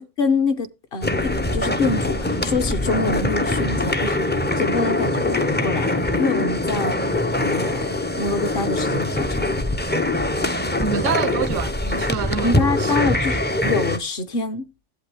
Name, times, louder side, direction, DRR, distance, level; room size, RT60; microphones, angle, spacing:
voice 1, 0.0-9.4 12.4-13.3 13.6-14.7, left 3 dB, 50° left, 1.0 m, -26 dB
sound 1, 1.0-14.0, left 1 dB, 15° left, 0.4 m, -23 dB
voice 2, 10.8-13.1, right 8 dB, 85° right, 1.0 m, -27 dB
11.0 x 8.1 x 3.3 m
omnidirectional pair, 1.3 m